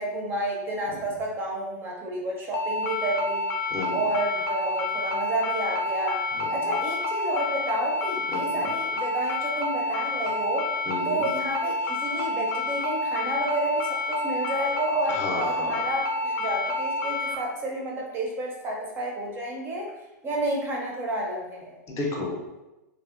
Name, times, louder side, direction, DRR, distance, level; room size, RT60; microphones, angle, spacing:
voice 1, 0.0-3.5 3.9-6.2 6.5-10.7 11.0-19.9 20.2-21.8, right 1 dB, 20° right, -1 dB, 0.5 m, -30 dB
sound 1, 2.5-17.3, left 2 dB, 80° left, 0.4 m, -29 dB
voice 2, 3.7-4.1 6.3-6.7 8.3-8.7 10.9-11.3 15.1-15.9 21.9-22.6, left 2 dB, 30° left, -1 dB, 0.6 m, -33 dB
2.6 x 2.4 x 2.4 m, 1.0 s
hypercardioid pair, 130°, 10 cm